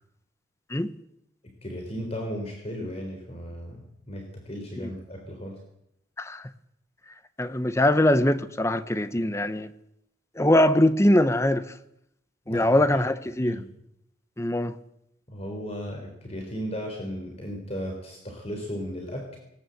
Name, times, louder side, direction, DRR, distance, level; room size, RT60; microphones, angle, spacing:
voice 1, 1.6-5.6 12.5-12.8 13.4-13.6 15.3-19.4, equal, 35° left, 2 dB, 3.8 m, -35 dB
voice 2, 6.2-6.5 7.4-9.7 10.4-11.7 12.5-13.6 14.4-14.8, left 1 dB, 15° left, 13 dB, 0.8 m, -22 dB
19.0 x 19.0 x 7.8 m, 0.81 s
head